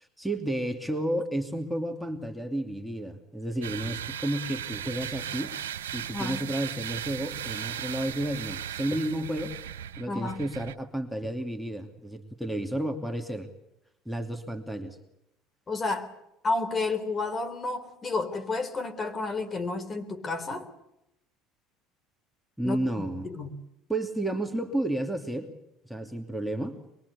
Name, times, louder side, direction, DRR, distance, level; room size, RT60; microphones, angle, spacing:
voice 1, 0.0-5.5 5.9-9.5 10.0-13.5 14.1-15.0 22.6-23.3 23.9-25.5 25.8-26.8, right 1 dB, ahead, 3 dB, 2.6 m, -32 dB
sound 1, 3.6-10.8, right 10 dB, 90° right, 1.0 m, -37 dB
voice 2, 6.1-6.4 10.1-10.4 15.7-16.1 16.4-20.7 22.6-23.5, left 3 dB, 30° left, 9 dB, 3.8 m, -31 dB
25.0 x 22.5 x 8.4 m, 0.84 s
hypercardioid pair, 85°, 0 cm